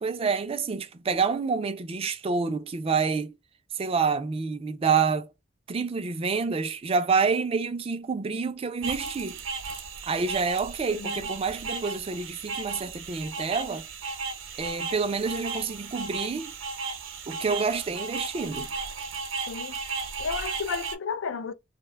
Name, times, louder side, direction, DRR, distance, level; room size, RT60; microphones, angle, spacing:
voice 1, 0.0-3.3 3.7-5.3 5.7-9.4 10.1-13.9 14.6-16.5 17.3-18.7, right 5 dB, 30° right, 0.3 m, -28 dB
sound 1, 8.8-20.9, right 4 dB, 70° right, 0.6 m, -35 dB
voice 2, 10.9-11.2 19.5-19.8 20.2-21.5, left 5 dB, 70° left, 0.3 m, -33 dB
2.5 x 2.1 x 3.4 m
head